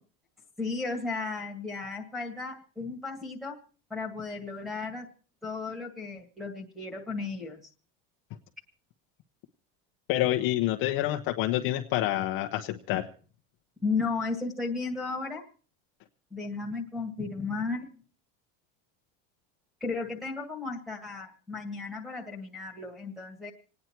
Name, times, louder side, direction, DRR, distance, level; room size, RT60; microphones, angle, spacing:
voice 1, 0.6-3.6 3.9-5.1 5.4-7.6 13.8-15.4 16.3-17.9 19.8-23.5, left 4 dB, ahead, -2 dB, 2.0 m, -34 dB
voice 2, 10.1-13.1, left 14 dB, 40° left, 4 dB, 0.9 m, -27 dB
27.5 x 9.5 x 4.5 m, 0.40 s
cardioid pair, 180°, 30 cm